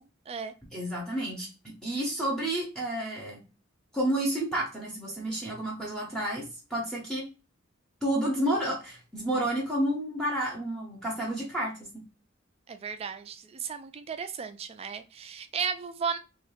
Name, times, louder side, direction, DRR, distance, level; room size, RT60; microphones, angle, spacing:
voice 1, 0.7-1.5 1.8-3.4 3.9-7.3 8.0-11.9, right 1 dB, 5° left, 0.7 m, -30 dB
voice 2, 12.7-16.2, right 6 dB, 30° right, 0.3 m, -35 dB
2.9 x 2.3 x 3.1 m
head